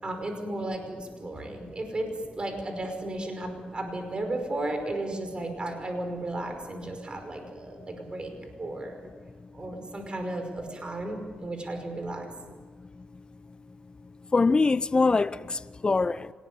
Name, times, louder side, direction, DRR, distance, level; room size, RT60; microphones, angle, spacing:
voice 1, 0.0-2.1 2.4-8.3 8.6-9.1 9.5-12.3, right 2 dB, 35° right, 5.4 m, -34 dB
voice 2, 14.3-16.3, left 3 dB, 30° left, 0.7 m, -23 dB
27.0 x 19.5 x 9.7 m
cardioid pair, 90°, 3 cm